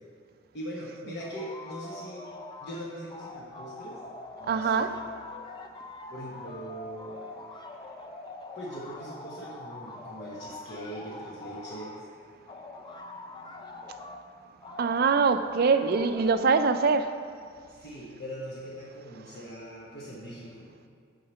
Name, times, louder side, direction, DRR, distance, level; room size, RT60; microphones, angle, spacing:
voice 1, 0.5-2.3 2.6-4.0 4.4-5.1 6.1-7.1 8.5-12.1 17.7-20.7, equal, 60° left, 1.1 m, -41 dB
sound 1, 1.2-2.8 3.1-12.0 12.5-14.2 14.6-16.9, left 2 dB, 25° left, 0.5 m, -44 dB
voice 2, 4.5-5.0 14.8-17.1, right 5 dB, 50° right, 0.4 m, -23 dB
6.5 x 5.7 x 6.9 m
head